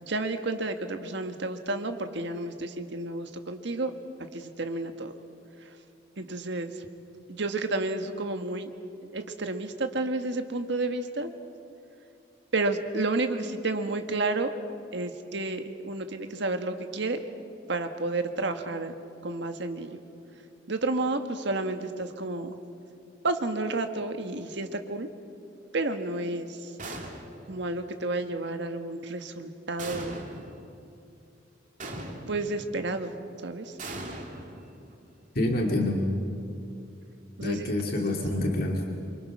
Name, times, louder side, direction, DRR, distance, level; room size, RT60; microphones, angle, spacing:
voice 1, 0.0-3.9 4.3-5.1 6.2-6.7 7.3-8.7 9.0-11.3 12.5-14.5 14.9-17.2 17.7-18.9 19.2-20.0 20.7-22.5 23.2-25.1 25.7-26.7 27.5-30.2 32.3-33.1 33.4-33.7 37.4-37.9 38.3-38.4, right 2 dB, 70° right, 7 dB, 1.6 m, -31 dB
sound 1, 26.8-27.5 29.8-30.6 31.8-32.6 33.8-35.0, right 1 dB, 45° right, 3.0 m, -39 dB
voice 2, 35.3-36.0 37.4-38.9, left 1 dB, 55° left, 0 dB, 2.4 m, -27 dB
27.5 x 24.5 x 6.1 m, 2.6 s
head